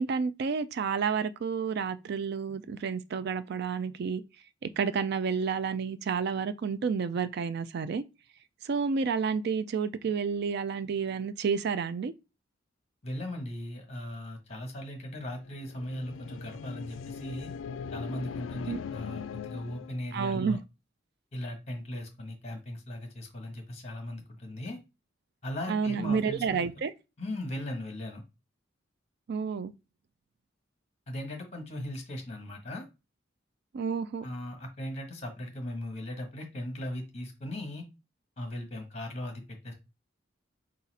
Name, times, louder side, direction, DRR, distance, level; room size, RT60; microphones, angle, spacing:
voice 1, 0.0-4.2 4.6-8.0 8.6-12.1 18.7-18.8 20.1-20.6 25.7-26.9 29.3-29.7 33.7-34.2, right 5 dB, 60° right, 0.4 m, -30 dB
voice 2, 13.0-17.5 17.9-20.6 21.3-24.8 25.4-26.7 27.2-28.2 31.1-32.8 34.2-37.8 38.4-39.7, left 1 dB, 35° left, 1.3 m, -38 dB
sound 1, 15.4-20.1, left 6 dB, 85° left, 0.3 m, -40 dB
4.0 x 2.5 x 4.1 m
head